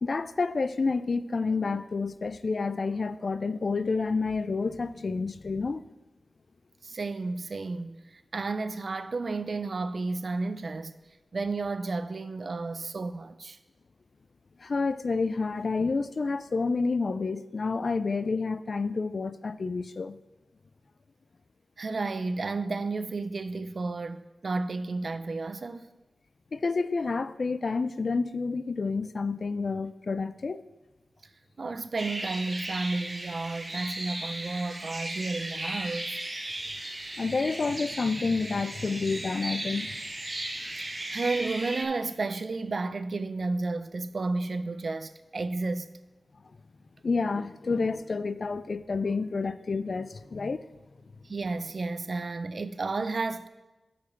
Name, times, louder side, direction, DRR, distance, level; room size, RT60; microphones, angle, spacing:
voice 1, 0.0-5.8 14.6-20.2 26.5-30.6 37.2-39.9 47.0-50.6, left 4 dB, 50° left, 0.3 m, -29 dB
voice 2, 6.8-10.9 11.3-13.6 21.8-25.9 31.6-36.2 41.1-45.9 51.2-53.5, right 3 dB, 50° right, 0.4 m, -32 dB
sound 1, 32.0-41.8, right 1 dB, 30° right, 1.0 m, -36 dB
8.3 x 5.0 x 5.9 m
wide cardioid pair, 115°, 0 cm